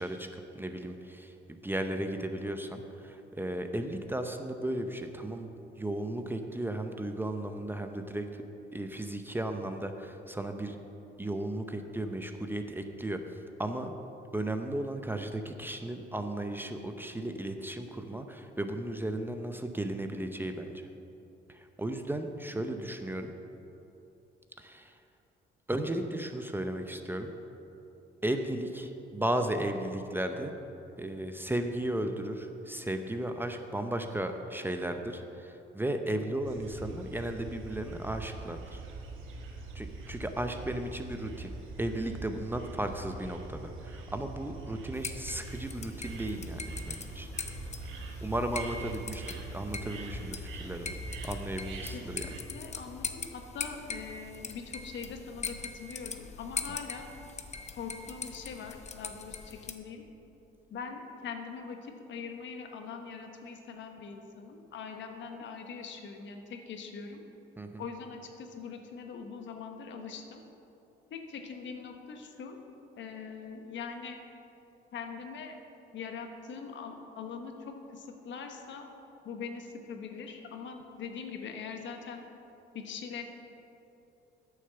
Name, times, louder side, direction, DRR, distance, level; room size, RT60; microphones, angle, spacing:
voice 1, 0.0-5.5 5.8-8.4 8.7-10.8 11.2-13.9 14.3-20.8 21.5-23.3 24.6-25.0 25.7-27.3 28.2-30.5 31.0-38.8 39.7-41.5 41.8-47.3 48.2-50.9 51.2-52.3 67.6-67.8, right 1 dB, 10° right, 6 dB, 0.7 m, -35 dB
sound 1, 36.4-52.4, right 2 dB, 85° right, 1.1 m, -43 dB
sound 2, 44.9-59.7, left 4 dB, 35° left, 0.7 m, -41 dB
voice 2, 51.9-57.1 57.8-60.0 60.7-67.2 67.8-70.4 71.1-72.6 73.0-74.2 74.9-75.6 75.9-78.9 79.2-82.2 82.7-83.2, left 5 dB, 70° left, 4 dB, 1.2 m, -42 dB
9.2 x 6.7 x 6.9 m, 2.9 s
cardioid pair, 90°, 20 cm